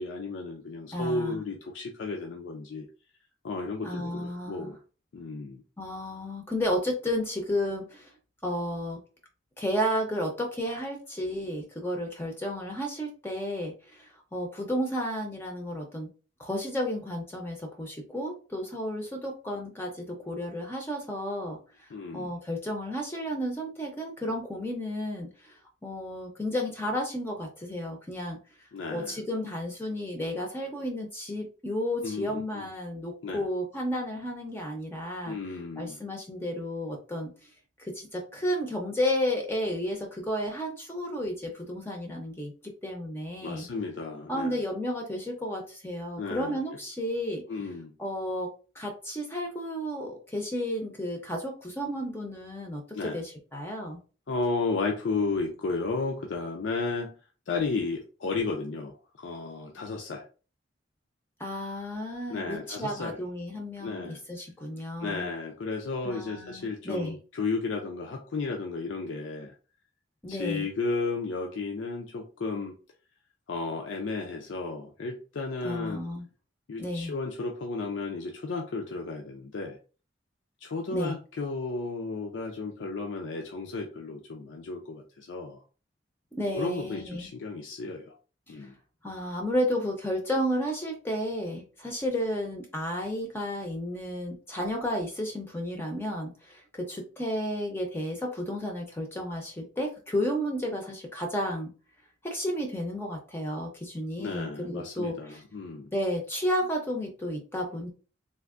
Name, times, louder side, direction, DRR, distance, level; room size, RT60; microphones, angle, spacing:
voice 1, 0.0-2.9 3.4-4.8 5.1-5.6 21.9-22.3 28.7-29.2 32.0-32.7 33.2-33.4 35.3-36.0 43.4-44.6 46.2-46.6 47.5-47.9 52.9-53.2 54.3-57.1 57.5-60.2 62.3-63.2 63.8-64.2 65.0-69.5 70.3-72.8 73.5-76.0 76.7-79.8 80.6-85.6 86.5-88.1 88.5-88.8 104.2-105.9, left 3 dB, 85° left, 1 dB, 0.4 m, -33 dB
voice 2, 0.9-1.4 3.8-4.8 5.8-8.1 8.4-9.0 9.6-16.1 16.4-25.6 25.8-28.4 28.9-35.4 35.8-37.3 37.8-42.5 42.8-43.7 44.3-47.4 48.0-54.0 61.4-65.3 66.0-67.2 70.2-70.7 75.6-76.3 76.8-77.1 80.9-81.1 86.3-87.3 88.5-88.7 89.0-101.7 102.2-105.4 105.9-107.9, equal, 15° left, 1 dB, 0.5 m, -32 dB
3.4 x 2.5 x 2.4 m, 0.36 s
head